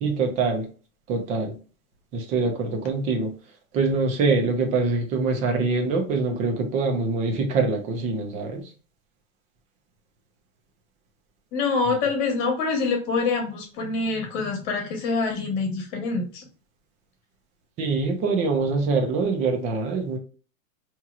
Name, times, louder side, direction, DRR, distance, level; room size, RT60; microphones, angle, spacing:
voice 1, 0.0-0.7 1.1-1.6 2.1-3.3 3.7-8.7 17.8-20.2, right 3 dB, 15° right, 3 dB, 0.5 m, -24 dB
voice 2, 11.5-16.4, left 4 dB, 35° left, 3 dB, 1.2 m, -25 dB
4.3 x 3.0 x 2.4 m, 0.37 s
hypercardioid pair, 150°, 42 cm